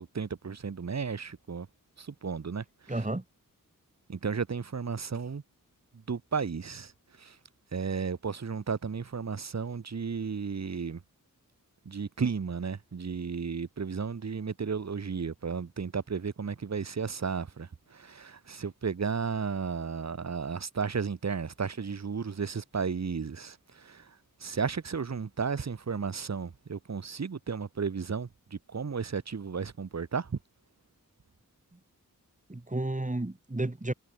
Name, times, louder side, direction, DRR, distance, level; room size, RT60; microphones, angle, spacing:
voice 1, 0.0-1.7 2.0-3.0 4.1-5.4 5.9-6.9 7.2-7.4 7.7-11.0 11.8-24.1 24.4-30.4, right 5 dB, 50° right, 1.1 m, -34 dB
voice 2, 2.9-3.2 32.5-33.9, right 2 dB, 20° right, 2.7 m, -32 dB
wide cardioid pair, 70°, 34 cm